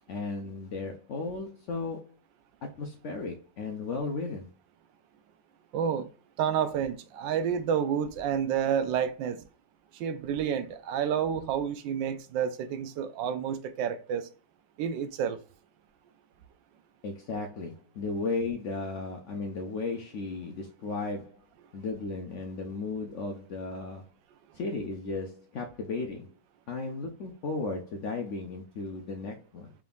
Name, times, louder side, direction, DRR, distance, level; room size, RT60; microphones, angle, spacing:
voice 1, 0.1-2.2 2.8-4.5 17.0-21.4 21.7-24.1 24.5-26.3 26.7-29.7, left 3 dB, 85° left, 0.6 m, -35 dB
voice 2, 5.7-6.1 6.4-9.4 9.9-14.3 14.8-15.4, right 8 dB, 80° right, 1.3 m, -29 dB
4.9 x 3.5 x 2.3 m
omnidirectional pair, 2.0 m